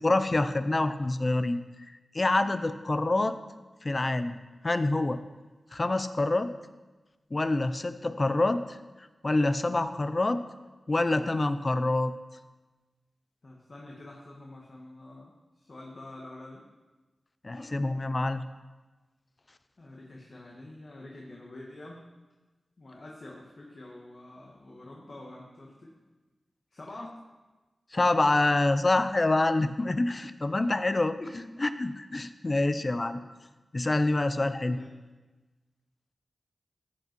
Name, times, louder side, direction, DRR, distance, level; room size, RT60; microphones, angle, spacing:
voice 1, 0.0-1.6 2.1-3.4 3.8-4.4 4.6-5.2 5.7-6.5 7.3-8.8 9.2-10.4 10.9-12.1 17.4-18.4 27.9-31.2 31.6-33.2 33.7-34.8, left 2 dB, 40° left, 11 dB, 0.7 m, -26 dB
voice 2, 13.4-16.6 17.5-17.9 19.8-22.0 22.8-25.9 26.7-27.2 31.2-31.4 34.7-35.0, left 2 dB, 55° left, -2 dB, 1.8 m, -46 dB
14.0 x 8.1 x 4.7 m, 1.2 s
cardioid pair, 50°, 0 cm